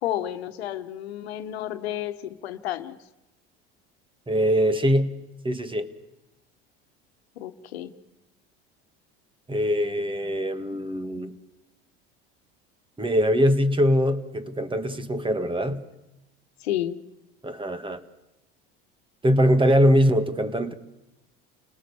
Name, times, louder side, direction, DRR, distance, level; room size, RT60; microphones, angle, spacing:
voice 1, 0.0-3.0 7.4-7.9 16.6-17.0, left 12 dB, 90° left, 1.3 m, -31 dB
voice 2, 4.3-5.2 5.4-5.9 9.5-11.3 13.0-15.8 17.4-18.0 19.2-20.7, equal, 15° right, 1.9 m, -22 dB
30.0 x 18.5 x 7.1 m
hypercardioid pair, 90°, 31 cm